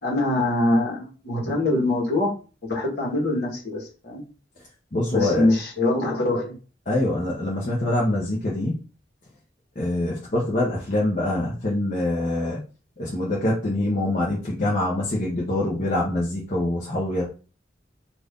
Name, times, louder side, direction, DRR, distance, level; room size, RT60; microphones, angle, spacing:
voice 1, 0.0-2.3 2.6-4.2 5.1-6.5, left 2 dB, 60° left, -3 dB, 1.3 m, -23 dB
voice 2, 4.9-5.5 6.9-8.8 9.8-12.6 13.0-17.2, left 1 dB, 45° left, -5 dB, 0.7 m, -24 dB
2.6 x 2.5 x 3.5 m, 0.35 s
head